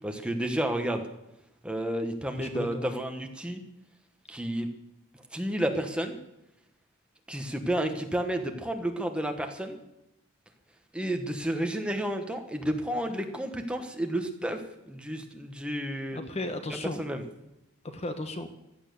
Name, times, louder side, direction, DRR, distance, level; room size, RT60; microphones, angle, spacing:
voice 1, 0.0-1.0 1.6-3.6 4.3-4.7 5.3-6.2 7.3-9.8 10.9-14.6 14.9-16.2 17.0-17.2, right 1 dB, 5° right, 5 dB, 1.3 m, -31 dB
voice 2, 2.4-2.9 16.1-17.0 17.8-18.5, left 1 dB, 30° left, 7 dB, 1.1 m, -35 dB
16.0 x 11.5 x 6.9 m, 0.87 s
head